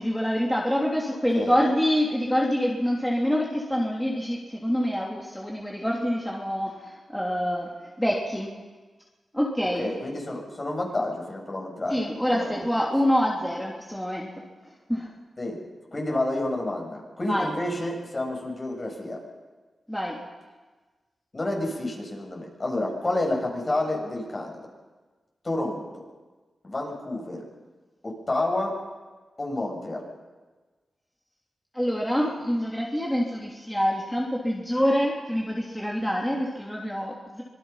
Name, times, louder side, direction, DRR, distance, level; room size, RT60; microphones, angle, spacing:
voice 1, 0.0-7.7 8.0-8.5 9.3-9.9 11.9-14.4 14.9-15.1 17.3-17.5 19.9-20.2 31.7-37.4, equal, 5° left, -3 dB, 3.3 m, -26 dB
voice 2, 9.8-12.0 12.3-12.6 15.4-15.6 15.9-19.2 21.3-24.6 25.4-26.0 26.6-27.4 28.0-28.7 29.4-30.0, left 1 dB, 35° left, 0 dB, 6.9 m, -29 dB
25.0 x 19.5 x 5.8 m, 1.3 s
cardioid pair, 60°, 0 cm